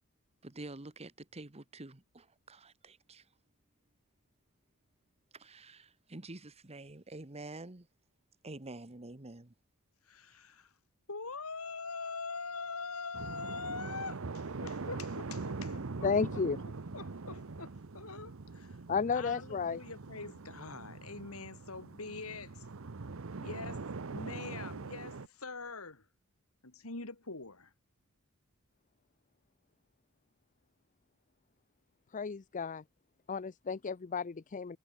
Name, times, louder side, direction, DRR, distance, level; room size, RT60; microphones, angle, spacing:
voice 1, 0.4-3.2 5.3-7.9 8.4-9.5, right 2 dB, 30° right, 1.4 m, -48 dB
voice 2, 10.0-10.7 11.1-18.8 19.1-22.7 23.3-26.1 26.6-27.7, left 4 dB, 80° left, 3.2 m, -44 dB
sound 1, 13.1-25.3, right 3 dB, 65° right, 0.8 m, -42 dB
voice 3, 16.0-16.6 18.9-19.8 32.1-32.8 33.3-34.8, left 5 dB, 35° left, 0.5 m, -33 dB
head